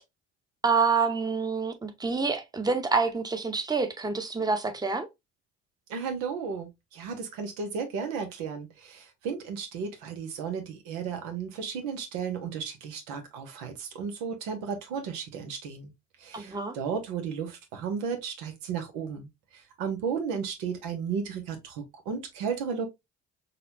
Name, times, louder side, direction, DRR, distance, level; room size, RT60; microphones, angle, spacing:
voice 1, 0.6-5.1 16.3-16.7, right 4 dB, 10° right, 0.8 m, -27 dB
voice 2, 5.9-15.9 16.2-19.3 19.8-22.9, right 6 dB, 85° right, 0.9 m, -34 dB
4.1 x 2.3 x 2.6 m
hypercardioid pair, 60°, 33 cm